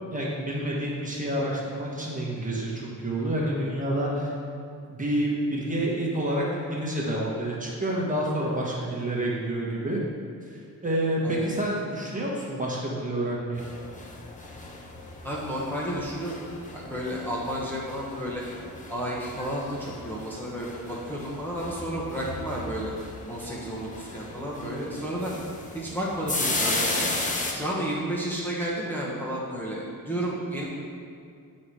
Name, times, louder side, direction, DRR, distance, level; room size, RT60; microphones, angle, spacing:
voice 1, 0.1-4.3 4.9-10.0 10.8-13.6, right 1 dB, 25° right, -4 dB, 1.4 m, -28 dB
sound 1, 13.5-27.5, left 2 dB, 20° left, 0.9 m, -35 dB
voice 2, 15.2-16.3 16.7-18.4 18.9-22.9 23.3-25.3 25.7-27.1 27.5-30.6, equal, 5° left, -7 dB, 1.2 m, -32 dB
9.5 x 4.3 x 4.7 m, 2.3 s
cardioid pair, 115°, 34 cm